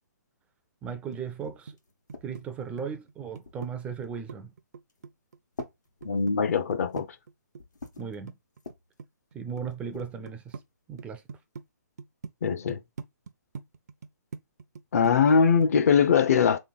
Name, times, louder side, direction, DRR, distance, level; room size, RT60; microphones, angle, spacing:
voice 1, 0.8-1.8 2.2-4.5 8.0-8.3 9.3-10.6 10.9-11.2, right 6 dB, 15° right, 0.4 m, -36 dB
sound 1, 1.1-1.2 1.4-2.6 3.4-3.9 4.7-5.1 5.5-7.3 7.6-8.1 8.5-9.0 9.7-10.7, left 3 dB, 90° left, 1.3 m, -45 dB
sound 2, 1.1-1.8 2.1-3.7 4.0-5.7 6.0-8.7 9.0-9.7 10.0-10.7 11.0-11.7 12.0-12.3 12.7-15.4 15.6-15.8, right 5 dB, 70° right, 0.6 m, -42 dB
voice 2, 6.0-7.1 12.4-12.8 14.9-16.6, left 6 dB, 55° left, 0.7 m, -21 dB
3.4 x 3.2 x 4.0 m
hypercardioid pair, 140°, 9 cm